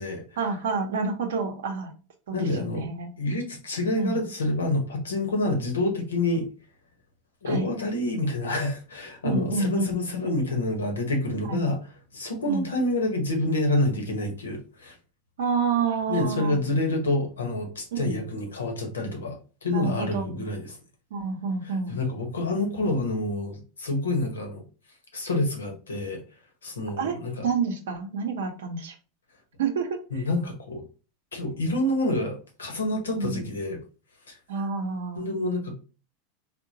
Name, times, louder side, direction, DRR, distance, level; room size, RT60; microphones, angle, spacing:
voice 1, 0.4-1.9 2.3-3.1 3.9-4.2 7.5-7.7 9.2-9.9 11.5-11.7 12.5-12.7 15.4-16.6 17.9-18.2 19.7-20.4 21.1-22.0 27.0-27.2 27.4-28.9 29.6-30.2 33.1-33.4 34.5-35.3, right 5 dB, 75° right, 5 dB, 0.7 m, -28 dB
voice 2, 2.3-2.9 3.2-6.5 7.4-11.8 12.1-14.9 16.1-20.8 21.6-24.6 25.1-26.2 26.6-27.5 30.1-30.8 31.3-33.8 34.3-34.4 35.1-35.7, left 2 dB, 90° left, 4 dB, 0.9 m, -27 dB
3.6 x 2.1 x 2.7 m, 0.34 s
hypercardioid pair, 95°, 0 cm